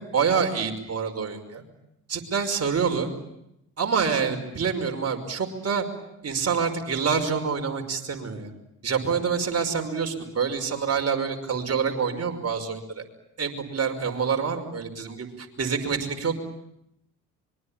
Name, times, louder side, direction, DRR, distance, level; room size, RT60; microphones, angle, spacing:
voice 1, 0.0-1.6 2.1-3.1 3.8-5.9 6.2-8.5 8.8-13.0 13.4-16.3, right 6 dB, 40° right, 4 dB, 5.5 m, -27 dB
25.0 x 23.5 x 8.9 m, 0.81 s
hypercardioid pair, 60°, 37 cm